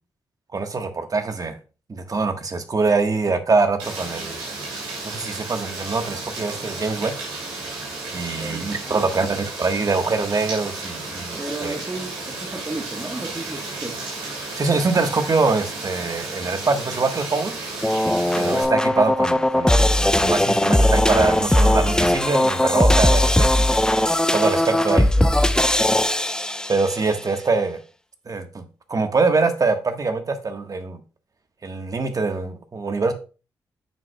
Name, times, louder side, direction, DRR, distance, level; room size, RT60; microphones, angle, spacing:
voice 1, 0.5-1.6 1.9-4.4 5.0-7.1 8.1-11.7 14.5-17.6 18.3-23.7 24.3-25.1 25.4-25.5 26.7-27.8 28.3-31.0 31.6-33.1, right 3 dB, 45° right, 1.4 m, -24 dB
Rain, 3.8-18.6, right 3 dB, 90° right, 2.6 m, -33 dB
voice 2, 8.4-9.3 11.4-14.0 24.7-25.3, right 2 dB, 25° right, 1.5 m, -34 dB
sound 1, 17.8-27.1, left 1 dB, 10° left, 0.5 m, -19 dB
9.0 x 6.3 x 2.3 m
hypercardioid pair, 40°, 9 cm